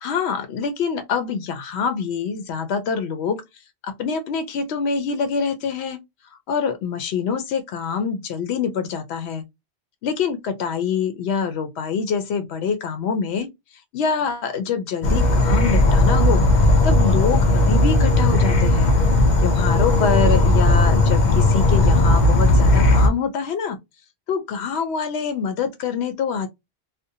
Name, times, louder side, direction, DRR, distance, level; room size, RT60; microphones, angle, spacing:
voice 1, 0.0-3.4 3.8-6.0 6.5-9.4 10.0-13.5 13.9-16.4 16.8-18.9 19.4-23.8 24.3-26.5, left 6 dB, 85° left, 0.8 m, -25 dB
Insect / Frog, 15.0-23.1, left 2 dB, 50° left, 0.7 m, -16 dB
2.5 x 2.1 x 2.6 m
omnidirectional pair, 1.1 m